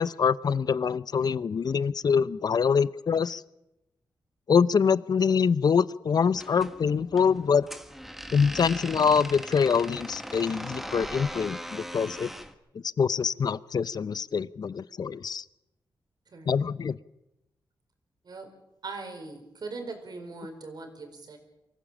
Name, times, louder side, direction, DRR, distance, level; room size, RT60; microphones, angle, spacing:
voice 1, 0.0-3.4 4.5-7.7 8.3-12.3 12.7-15.4 16.5-17.0, left 6 dB, 55° left, 18 dB, 0.6 m, -25 dB
sound 1, 6.3-12.5, equal, 5° right, 1.5 m, -40 dB
voice 2, 16.3-16.7 18.2-18.5 18.8-21.4, right 3 dB, 60° right, 5 dB, 4.4 m, -40 dB
24.5 x 15.5 x 7.3 m, 0.90 s
cardioid pair, 80°, 8 cm